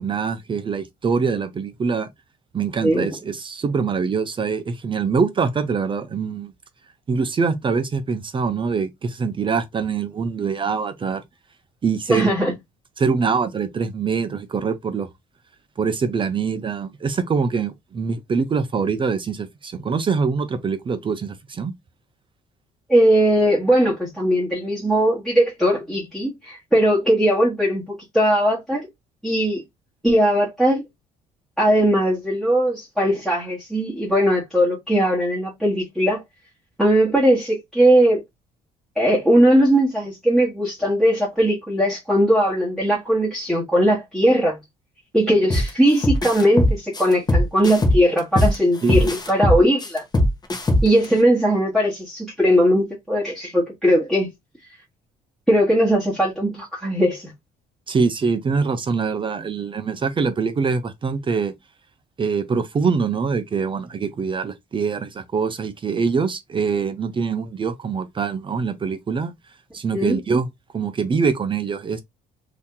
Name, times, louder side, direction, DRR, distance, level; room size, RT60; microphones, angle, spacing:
voice 1, 0.0-2.1 2.5-6.5 7.1-11.2 11.8-12.4 13.0-15.1 15.8-21.7 48.8-49.1 57.9-61.5 62.2-69.3 69.7-70.5 70.7-72.0, right 5 dB, 30° right, 0.6 m, -24 dB
voice 2, 2.8-3.1 12.1-12.5 22.9-28.9 29.2-29.6 30.0-30.8 31.6-36.2 36.8-38.2 39.0-44.6 45.1-50.0 50.8-54.3 55.5-57.3 69.9-70.2, equal, ahead, 1.4 m, -19 dB
sound 1, 45.5-45.7 46.0-48.5 48.9-51.0, left 1 dB, 25° left, 1.1 m, -19 dB
2.9 x 2.7 x 3.7 m
cardioid pair, 110°, 17 cm